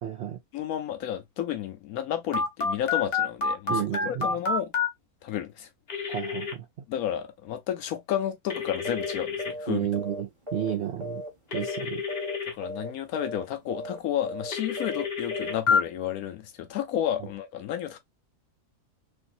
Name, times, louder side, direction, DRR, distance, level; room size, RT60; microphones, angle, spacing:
voice 1, 0.0-0.4 3.7-4.2 6.1-6.7 9.7-11.2 11.5-12.0, right 11 dB, 70° right, 0.6 m, -31 dB
voice 2, 0.5-4.7 5.2-5.7 6.9-9.9 12.5-18.0, left 10 dB, 70° left, 1.0 m, -31 dB
Telephone, 2.3-4.9 5.9-6.5 8.5-9.5 11.5-12.5 14.5-15.8, left 5 dB, 45° left, 1.1 m, -28 dB
sound 1, 8.8-9.1 9.4-9.7 9.9-11.3 11.5-11.8 12.1-12.4 12.6-12.9 13.2-13.4 13.7-14.0 14.2-14.5 14.8-15.0 15.3-15.6, equal, 20° right, 1.1 m, -37 dB
3.2 x 2.7 x 2.5 m
omnidirectional pair, 1.7 m